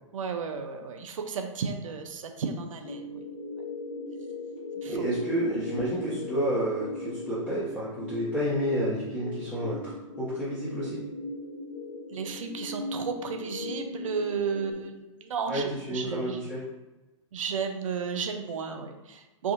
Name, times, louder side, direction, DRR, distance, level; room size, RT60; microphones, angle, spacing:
voice 1, 0.1-3.2 4.8-5.4 12.1-16.4 17.3-19.5, right 5 dB, 75° right, 5 dB, 0.6 m, -33 dB
sound 1, 2.8-14.7, left 2 dB, 75° left, 1.0 m, -38 dB
voice 2, 4.9-9.9 10.2-11.0 15.5-16.6, equal, 5° left, -12 dB, 1.2 m, -30 dB
4.8 x 2.7 x 2.5 m, 1.1 s
hypercardioid pair, 115°, 17 cm